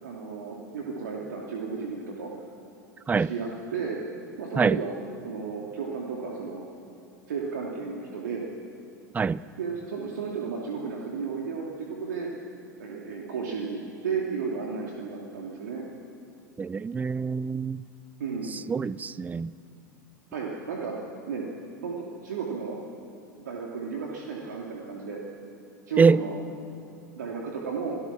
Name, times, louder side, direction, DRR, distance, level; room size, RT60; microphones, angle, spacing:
voice 1, 0.0-2.3 3.1-4.0 4.4-4.9 5.2-6.7 7.3-8.4 9.6-12.3 12.8-15.8 18.2-18.6 20.3-20.9 21.3-21.4 21.8-22.8 23.4-25.2 25.9-26.3 27.1-28.0, right 5 dB, 70° right, 2.8 m, -33 dB
voice 2, 16.6-17.8 18.7-19.5 26.0-26.2, right 5 dB, 15° right, 0.5 m, -24 dB
28.0 x 18.0 x 6.2 m
figure-of-eight pair, 90°, 10 cm